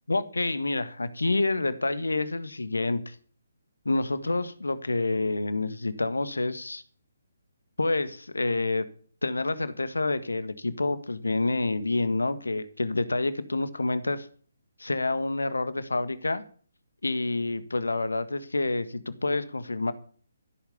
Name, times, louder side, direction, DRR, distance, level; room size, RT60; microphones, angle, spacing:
voice 1, 0.1-3.2 3.8-6.8 7.8-8.9 9.2-14.3 14.8-16.4 17.0-19.9, left 2 dB, 80° left, 14 dB, 1.6 m, -28 dB
15.0 x 8.4 x 7.0 m, 0.43 s
figure-of-eight pair, 140°, 0 cm